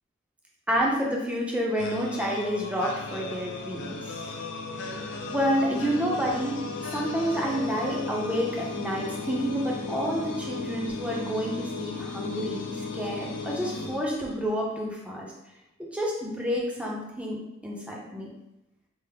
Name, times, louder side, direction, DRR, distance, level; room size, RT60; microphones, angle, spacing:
voice 1, 0.7-4.1 5.3-6.6 6.9-15.3 15.8-17.4 17.6-18.3, equal, 5° right, -3 dB, 0.5 m, -29 dB
sound 1, 1.8-14.7, left 3 dB, 60° left, 0.4 m, -36 dB
3.4 x 2.0 x 3.4 m, 0.90 s
head